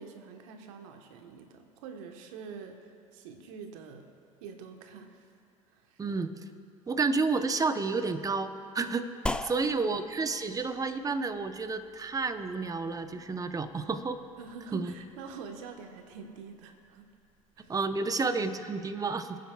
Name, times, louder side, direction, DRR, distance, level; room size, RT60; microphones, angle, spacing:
voice 1, 0.0-4.0 4.4-5.2 5.7-6.0 9.4-9.9 14.4-17.1 17.6-17.8, right 5 dB, 65° right, 4 dB, 1.4 m, -46 dB
voice 2, 6.0-6.3 6.9-9.1 9.4-14.2 14.7-14.9 17.7-19.4, right 4 dB, 20° right, 9 dB, 0.9 m, -30 dB
sound 1, 9.3-18.0, left 2 dB, 5° left, 0.5 m, -43 dB
27.5 x 9.4 x 2.5 m, 2.4 s
hypercardioid pair, 70°, 18 cm